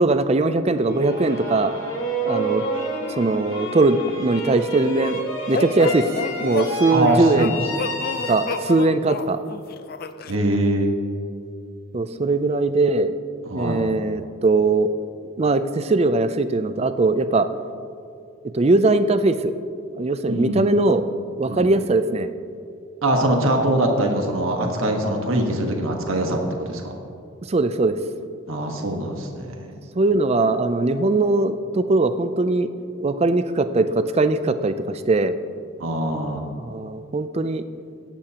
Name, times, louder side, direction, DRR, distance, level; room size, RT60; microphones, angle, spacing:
voice 1, 0.0-1.7 2.2-2.6 3.2-5.2 5.5-6.1 6.4-7.5 8.3-9.4 11.9-13.1 13.5-14.9 15.4-17.5 18.5-19.5 20.0-21.0 21.4-22.3 27.5-28.0 30.0-32.7 33.0-35.4 36.6-37.6, right 2 dB, 30° right, 11 dB, 0.4 m, -20 dB
sound 1, 0.8-9.0, right 2 dB, 85° left, 2.8 m, -29 dB
sound 2, 5.5-10.3, left 4 dB, 45° left, 0.4 m, -29 dB
voice 2, 6.9-7.6 10.3-10.9 13.4-13.8 20.3-20.6 21.4-21.7 23.0-26.9 28.5-29.7 35.8-36.5, right 1 dB, 85° right, 2 dB, 1.5 m, -23 dB
17.0 x 11.5 x 2.9 m, 2.4 s
head